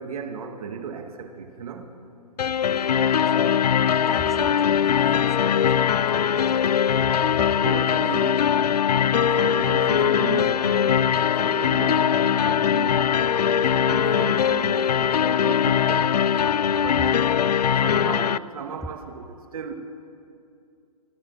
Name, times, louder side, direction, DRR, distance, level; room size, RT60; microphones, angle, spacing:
voice 1, 0.0-1.9 4.4-4.5 7.6-8.6 9.1-13.1 13.5-14.8 15.2-16.1 16.7-17.2 17.8-19.7, right 6 dB, 60° right, 5 dB, 2.2 m, -35 dB
sound 1, 2.4-18.4, left 8 dB, 75° left, 0.5 m, -21 dB
voice 2, 3.2-3.6 4.0-6.6 7.3-7.6 16.9-17.2, equal, ahead, 8 dB, 0.8 m, -41 dB
26.0 x 14.5 x 7.4 m, 2.5 s
hypercardioid pair, 135°, 21 cm